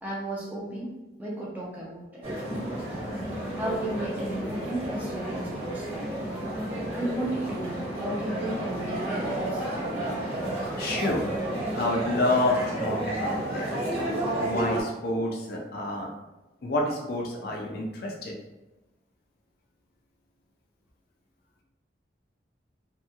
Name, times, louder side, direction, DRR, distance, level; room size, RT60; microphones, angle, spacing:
voice 1, 0.0-2.3 3.5-6.3 6.9-9.6, right 1 dB, 10° right, -6 dB, 0.4 m, -34 dB
sound 1, 2.2-14.8, right 1 dB, 35° right, 1.2 m, -31 dB
voice 2, 10.8-11.3 11.7-13.8 14.4-16.1 16.6-18.4, left 1 dB, 55° left, -1 dB, 0.4 m, -28 dB
2.8 x 2.6 x 2.3 m, 1.1 s
head